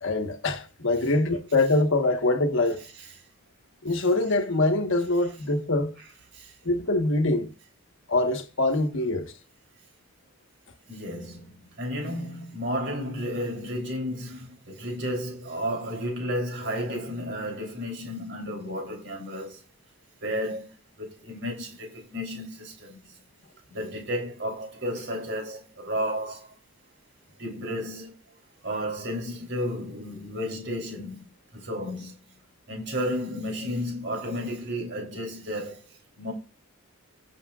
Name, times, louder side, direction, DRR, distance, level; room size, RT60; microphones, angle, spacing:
voice 1, 0.0-2.8 3.8-6.0 6.6-7.5 8.1-9.3, left 2 dB, 60° left, 1.3 m, -24 dB
voice 2, 10.9-19.6 20.2-20.7 21.0-23.0 23.7-26.5 27.4-28.1 28.6-31.2 31.5-32.1 32.7-35.8 36.2-36.3, equal, 55° right, 3.3 m, -32 dB
18.5 x 7.1 x 2.4 m
head